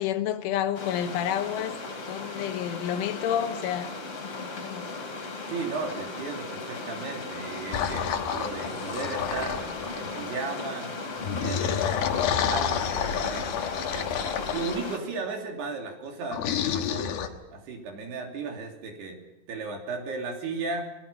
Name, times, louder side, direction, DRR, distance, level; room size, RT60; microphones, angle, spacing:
voice 1, 0.0-1.8 2.1-3.9 4.2-4.9, left 10 dB, 85° left, 3.7 m, -30 dB
sound 1, 0.7-15.0, left 3 dB, 35° left, 3.6 m, -36 dB
voice 2, 5.5-11.0 11.4-11.8 12.1-19.2 19.5-21.1, right 4 dB, 60° right, 5.0 m, -36 dB
sound 2, 7.7-10.1 11.2-14.8 16.3-17.3, left 8 dB, 65° left, 2.8 m, -29 dB
30.0 x 20.0 x 5.8 m
omnidirectional pair, 5.4 m